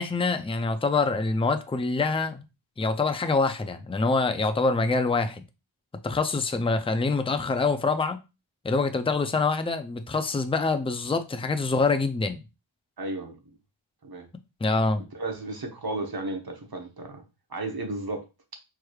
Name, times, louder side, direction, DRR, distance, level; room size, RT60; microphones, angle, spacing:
voice 1, 0.0-2.4 2.8-5.4 6.0-8.2 8.6-12.4 14.6-15.0, left 3 dB, 15° left, 0.4 m, -25 dB
voice 2, 13.0-13.4 14.0-14.3 15.1-17.2 17.5-18.2, right 2 dB, 50° right, 1.0 m, -33 dB
4.7 x 3.1 x 2.3 m
wide cardioid pair, 75°, 48 cm